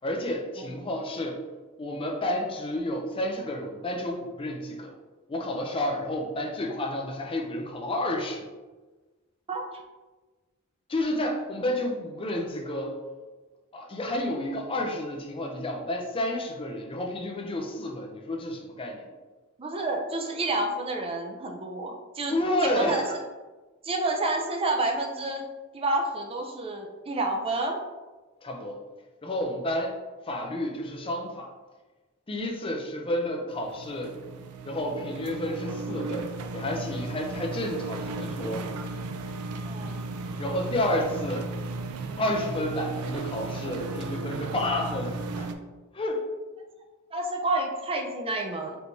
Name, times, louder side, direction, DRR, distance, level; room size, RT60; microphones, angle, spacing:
voice 1, 0.0-1.4 1.8-4.9 5.3-8.5 10.9-13.0 13.7-19.1 22.3-23.2 28.4-28.8 29.2-30.0 30.3-31.5 32.3-34.1 34.6-38.6 40.4-41.5 42.2-45.5 45.9-46.2, left 1 dB, 25° left, 1 dB, 0.5 m, -30 dB
voice 2, 19.6-22.3 22.6-23.0 23.8-25.4 25.7-27.8 39.6-40.0 47.1-48.8, right 2 dB, 25° right, 2 dB, 0.5 m, -29 dB
sound 1, 33.5-45.5, right 3 dB, 90° right, 0.4 m, -35 dB
4.5 x 3.3 x 2.7 m, 1.2 s
head